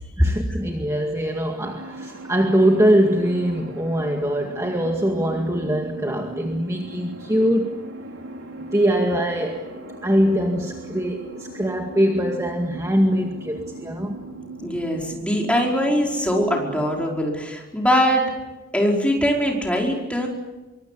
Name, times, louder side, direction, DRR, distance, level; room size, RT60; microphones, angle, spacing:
voice 1, 0.2-7.8 8.7-9.7 10.0-14.2, equal, 15° right, 2 dB, 2.1 m, -22 dB
sound 1, 1.6-17.1, right 1 dB, 70° right, 4.1 m, -38 dB
voice 2, 14.6-18.2 18.7-20.3, equal, 5° left, -1 dB, 5.0 m, -22 dB
25.5 x 24.0 x 8.5 m, 1.1 s
head